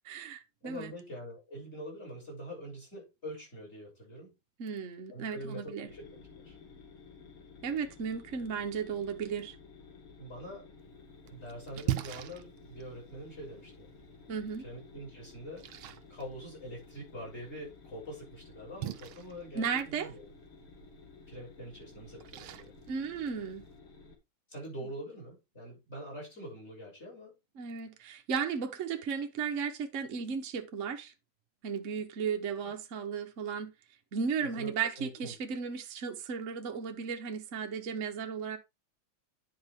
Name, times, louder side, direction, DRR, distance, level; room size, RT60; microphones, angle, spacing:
voice 1, 0.0-0.9 4.6-5.9 7.6-9.6 14.3-14.6 19.5-20.1 22.9-23.6 27.6-31.1 31.6-33.7 34.1-38.6, right 6 dB, 45° right, 1.2 m, -35 dB
voice 2, 0.6-4.3 5.1-6.6 10.2-10.7 11.3-13.9 14.6-15.7 16.1-20.2 21.3-22.7 24.5-27.3 32.6-32.7 34.4-34.7 35.0-35.3, equal, 30° left, 6.8 m, -44 dB
sound 1, 5.9-24.1, left 4 dB, 85° left, 2.8 m, -54 dB
Splash splatter, 10.8-23.8, right 13 dB, 85° right, 1.6 m, -44 dB
10.0 x 5.3 x 3.6 m
omnidirectional pair, 2.3 m